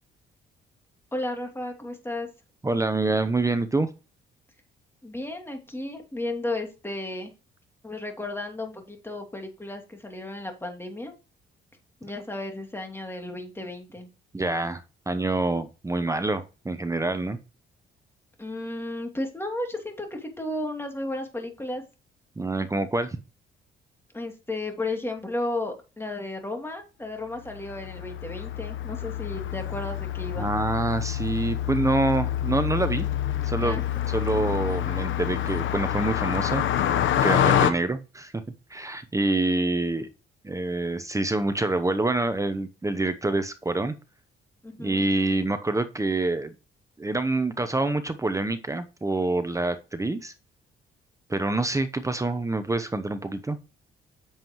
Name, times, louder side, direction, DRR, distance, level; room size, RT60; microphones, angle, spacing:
voice 1, 1.1-2.3 5.0-7.3 7.8-11.1 12.0-14.1 18.4-21.8 24.1-30.5 33.6-33.8 34.3-34.5 44.6-45.0, left 2 dB, 10° left, 3 dB, 2.8 m, -33 dB
voice 2, 2.6-3.9 14.3-17.4 22.4-23.2 30.4-33.1 33.4-36.6 37.2-38.3 38.7-40.1 40.4-43.9 44.8-46.5 47.0-50.3 51.3-53.6, right 2 dB, 15° right, 10 dB, 0.8 m, -26 dB
Car passing by, 27.6-37.7, left 11 dB, 75° left, 1.0 m, -27 dB
8.7 x 7.3 x 3.1 m, 0.30 s
cardioid pair, 90°, 20 cm